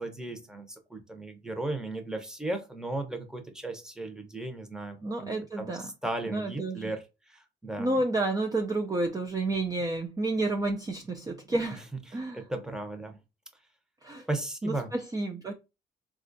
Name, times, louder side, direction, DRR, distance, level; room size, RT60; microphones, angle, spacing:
voice 1, 0.0-7.0 7.3-8.0 11.5-11.8 12.3-13.2 14.3-14.9, right 2 dB, 5° right, 0.8 m, -36 dB
voice 2, 5.0-5.9 6.3-6.9 7.8-11.8 12.1-12.4 14.0-14.3 14.6-15.5, right 2 dB, 20° right, 0.5 m, -30 dB
4.2 x 2.5 x 2.6 m
cardioid pair, 90°, 20 cm